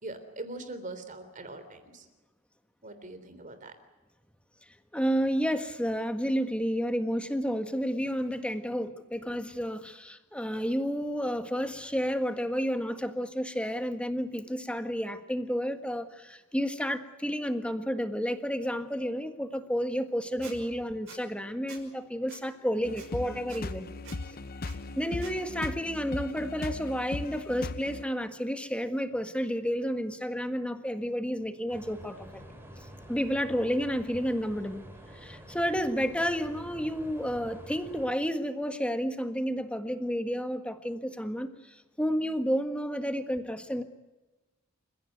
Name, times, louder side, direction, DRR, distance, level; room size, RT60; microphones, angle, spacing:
voice 1, 0.0-2.1 2.8-3.8, right 2 dB, 35° right, 10 dB, 3.4 m, -42 dB
voice 2, 4.9-23.9 25.0-32.4 32.8-34.8 35.1-43.8, equal, 5° left, 8 dB, 1.6 m, -31 dB
Squeak, 20.4-20.6 21.1-21.2 21.7-21.8 22.3-22.4 23.0-23.1 23.5-23.6 24.0-24.2 24.6-24.8 25.2-25.3, right 5 dB, 60° right, 5.8 m, -47 dB
sound 1, 22.8-28.0, left 3 dB, 45° left, 0.8 m, -38 dB
sound 2, 31.7-38.1, right 1 dB, 10° right, 3.8 m, -48 dB
28.5 x 16.0 x 9.3 m, 1.1 s
head